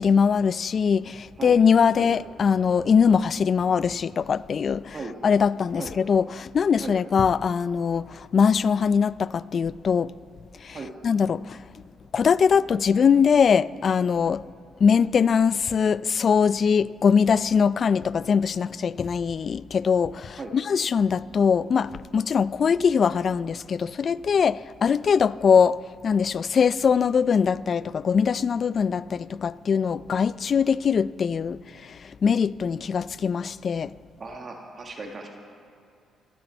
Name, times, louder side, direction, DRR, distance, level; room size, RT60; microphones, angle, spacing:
voice 1, 0.0-5.0 5.2-10.1 10.6-10.8 11.0-11.6 12.1-14.4 14.8-33.9, left 6 dB, 50° left, 0.3 m, -22 dB
voice 2, 34.2-35.3, right 3 dB, 40° right, 1.8 m, -37 dB
26.0 x 9.6 x 4.5 m
cardioid pair, 90°, 0 cm